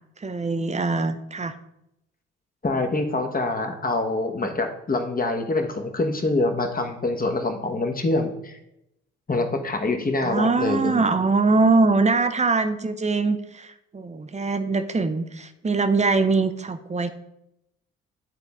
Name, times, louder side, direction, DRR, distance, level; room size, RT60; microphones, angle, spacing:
voice 1, 0.2-1.5 10.2-17.1, right 3 dB, 20° right, 10 dB, 0.7 m, -22 dB
voice 2, 2.6-8.6 9.3-11.0, left 2 dB, 25° left, 5 dB, 1.1 m, -25 dB
9.3 x 3.9 x 3.5 m, 0.83 s
hypercardioid pair, 50°, 33 cm